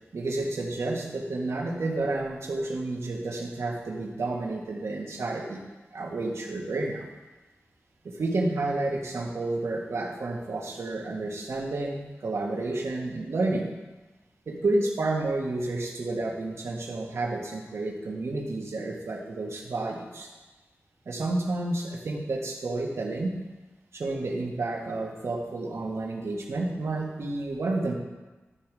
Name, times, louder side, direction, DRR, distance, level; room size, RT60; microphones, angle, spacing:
voice 1, 0.1-5.6 5.9-7.1 8.0-13.7 14.5-20.3 21.1-23.4 23.9-27.9, right 2 dB, 80° right, -1 dB, 1.7 m, -30 dB
12.0 x 5.2 x 6.2 m, 1.2 s
wide cardioid pair, 105°, 5 cm